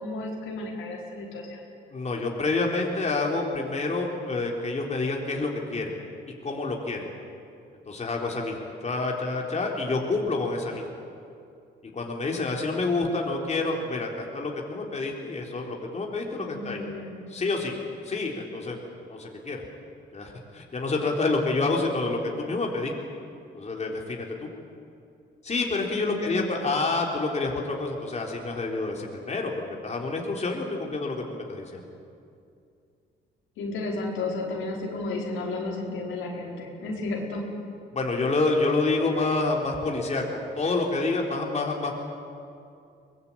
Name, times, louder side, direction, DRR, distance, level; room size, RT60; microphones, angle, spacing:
voice 1, 0.0-1.6 16.3-17.1 26.0-26.5 33.6-37.4, left 2 dB, 85° left, -2 dB, 4.8 m, -33 dB
voice 2, 1.9-5.9 6.4-7.1 7.9-10.8 11.9-16.8 17.3-17.8 18.0-18.8 19.1-19.6 20.1-22.9 23.5-24.5 25.4-31.8 37.9-41.9, left 3 dB, 35° left, 0 dB, 3.9 m, -28 dB
23.0 x 20.0 x 8.9 m, 2.5 s
cardioid pair, 90°, 20 cm